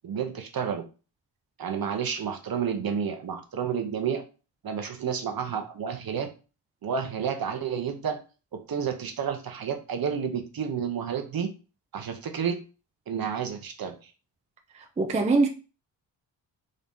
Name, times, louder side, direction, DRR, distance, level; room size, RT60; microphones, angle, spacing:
voice 1, 0.0-0.8 1.6-4.2 4.6-6.3 6.8-8.2 8.5-11.5 11.9-12.6 13.1-14.1, right 7 dB, 50° right, 0.8 m, -30 dB
voice 2, 15.0-15.5, right 3 dB, 15° right, 0.4 m, -22 dB
3.8 x 2.7 x 3.6 m
cardioid pair, 95°, 46 cm